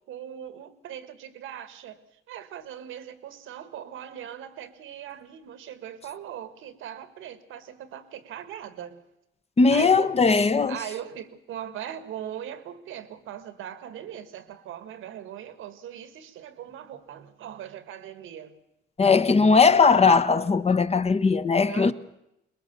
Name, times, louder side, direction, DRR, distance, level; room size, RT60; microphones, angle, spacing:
voice 1, 0.1-9.0 9.7-10.3 10.7-18.6 21.6-21.9, right 10 dB, 85° right, 1.8 m, -40 dB
voice 2, 9.6-10.8 19.0-21.9, left 4 dB, 30° left, 1.1 m, -19 dB
22.0 x 21.0 x 6.8 m
cardioid pair, 90°, 20 cm